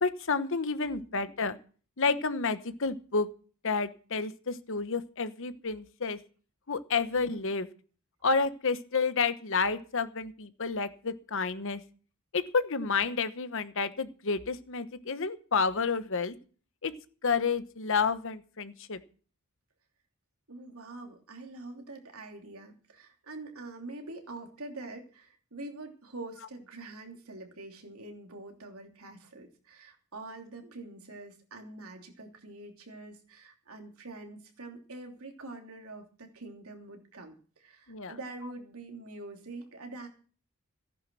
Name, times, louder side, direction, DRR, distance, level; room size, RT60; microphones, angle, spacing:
voice 1, 0.0-1.6 2.0-3.3 3.6-6.2 6.7-7.7 8.2-11.8 12.3-16.3 16.8-16.9 17.2-19.0 37.9-38.1, left 4 dB, 65° left, 12 dB, 1.1 m, -30 dB
voice 2, 7.1-7.4 20.5-40.1, right 2 dB, 85° right, 3 dB, 3.1 m, -45 dB
15.0 x 10.5 x 6.1 m, 0.41 s
head